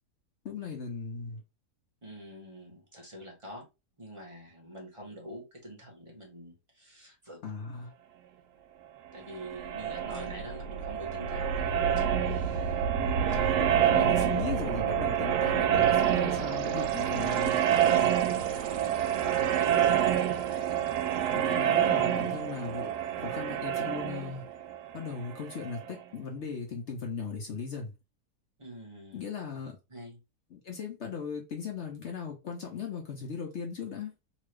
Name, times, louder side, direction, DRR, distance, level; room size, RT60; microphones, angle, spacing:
voice 1, 0.4-1.4 7.4-7.9 13.3-17.6 21.3-22.9 23.2-24.4 24.9-27.9 29.1-29.8 30.5-34.1, left 5 dB, 60° left, 0.8 m, -38 dB
voice 2, 2.0-3.6 4.0-7.4 9.1-12.8 19.4-20.0 28.6-29.2 29.9-30.2, equal, 25° right, 0.8 m, -46 dB
sound 1, 9.3-25.9, right 9 dB, 80° right, 1.1 m, -27 dB
3.0 x 2.4 x 3.1 m
omnidirectional pair, 1.7 m